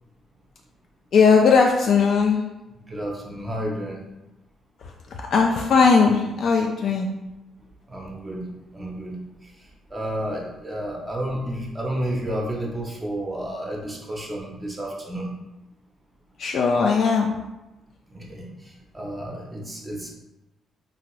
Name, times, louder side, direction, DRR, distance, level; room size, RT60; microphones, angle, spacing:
voice 1, 1.1-2.4 4.8-7.1 16.4-17.3, left 5 dB, 65° left, 1 dB, 0.3 m, -19 dB
voice 2, 2.9-4.0 7.9-8.4 8.7-9.2 9.9-15.3 18.1-18.5 18.9-20.1, right 1 dB, 20° right, -1 dB, 0.6 m, -31 dB
2.8 x 2.5 x 3.0 m, 0.98 s
cardioid pair, 90°, 0 cm